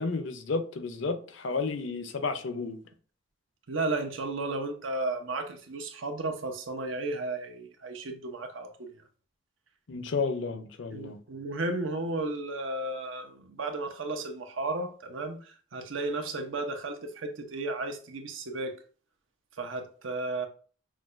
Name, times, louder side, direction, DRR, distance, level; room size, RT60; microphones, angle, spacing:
voice 1, 0.0-2.8 9.9-11.2, left 4 dB, 75° left, 0.5 m, -32 dB
voice 2, 3.7-8.9 10.9-18.8 19.6-20.5, right 2 dB, 85° right, 0.7 m, -34 dB
6.0 x 2.2 x 2.5 m
head